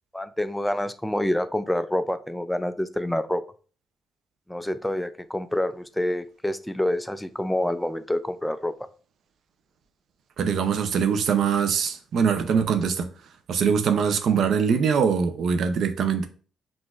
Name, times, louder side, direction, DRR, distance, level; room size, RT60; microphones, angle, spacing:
voice 1, 0.1-3.4 4.5-8.9, left 1 dB, 5° left, 0.3 m, -27 dB
voice 2, 10.4-13.1 13.5-16.3, right 6 dB, 65° right, 0.5 m, -23 dB
5.9 x 2.5 x 2.4 m
cardioid pair, 90°, 0 cm